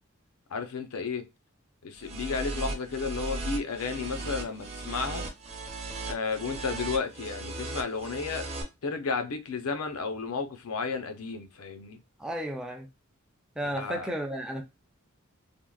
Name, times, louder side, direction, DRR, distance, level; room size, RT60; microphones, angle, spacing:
voice 1, 0.5-1.3 1.8-5.3 6.1-8.5 8.8-12.0 13.7-14.1, left 4 dB, 85° left, 0.6 m, -33 dB
sound 1, 2.0-8.6, right 2 dB, 30° right, 0.7 m, -37 dB
voice 2, 12.2-12.9 13.6-14.6, right 1 dB, 5° right, 0.4 m, -33 dB
3.5 x 2.0 x 2.3 m
head